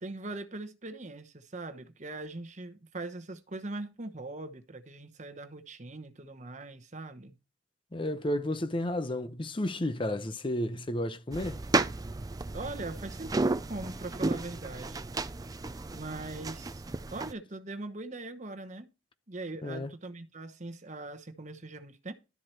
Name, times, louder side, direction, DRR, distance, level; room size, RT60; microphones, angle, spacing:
voice 1, 0.0-7.4 12.5-15.1 15.9-16.8 17.1-18.9 19.3-22.1, right 2 dB, 40° right, 1.0 m, -41 dB
voice 2, 7.9-11.6 19.6-19.9, left 1 dB, 25° left, 0.7 m, -32 dB
sound 1, 11.3-17.3, right 2 dB, 20° right, 0.4 m, -33 dB
12.0 x 4.7 x 4.4 m
head